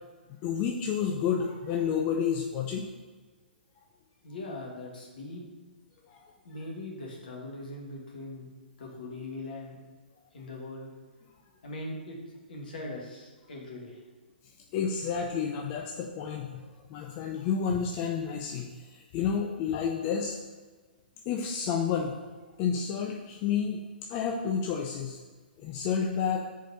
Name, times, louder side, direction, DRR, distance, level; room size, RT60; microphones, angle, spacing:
voice 1, 0.3-2.9 6.1-6.2 14.7-20.4 21.3-22.2 22.6-23.8 24.1-25.2 25.6-26.5, left 7 dB, 30° left, 1 dB, 0.5 m, -30 dB
voice 2, 4.2-5.4 6.5-8.5 8.8-9.8 10.3-10.9 11.6-12.2 12.5-14.0, left 2 dB, 60° left, -1 dB, 1.7 m, -40 dB
4.6 x 4.5 x 5.6 m, 1.4 s
figure-of-eight pair, 120°, 6 cm